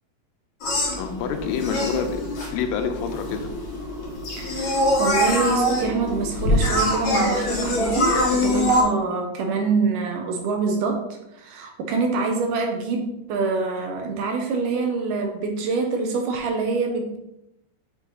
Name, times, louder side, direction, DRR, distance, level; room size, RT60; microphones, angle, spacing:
sound 1, 0.6-8.8, equal, 60° left, 2.7 m, -24 dB
voice 1, 0.9-2.2 2.5-3.5, left 7 dB, 85° left, 6 dB, 2.3 m, -27 dB
voice 2, 4.4-17.2, right 4 dB, 75° right, 3 dB, 2.1 m, -25 dB
7.6 x 3.3 x 3.9 m, 0.85 s
omnidirectional pair, 4.1 m